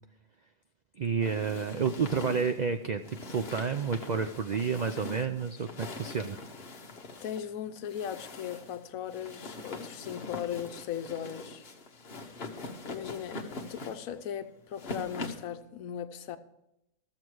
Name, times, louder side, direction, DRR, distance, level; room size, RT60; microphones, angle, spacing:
voice 1, 1.0-6.4, right 6 dB, 85° right, 0.3 m, -30 dB
sound 1, 1.2-15.5, left 3 dB, 50° left, 1.3 m, -43 dB
voice 2, 7.2-11.6 12.8-16.4, left 9 dB, 80° left, 1.1 m, -38 dB
13.5 x 7.4 x 4.7 m
omnidirectional pair, 1.4 m